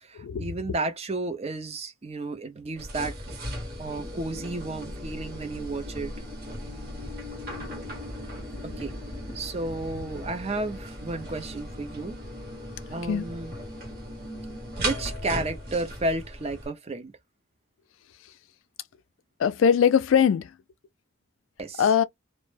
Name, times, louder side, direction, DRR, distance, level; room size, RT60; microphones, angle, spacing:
voice 1, 0.0-3.2 3.8-6.3 8.6-8.9 9.3-12.2 12.9-13.5 14.8-17.1 21.6-21.9, right 2 dB, 30° right, 0.5 m, -32 dB
sound 1, 2.8-16.7, equal, 50° right, 1.0 m, -37 dB
voice 2, 19.4-20.5 21.8-22.0, left 7 dB, 75° left, 0.3 m, -21 dB
2.0 x 2.0 x 3.1 m
head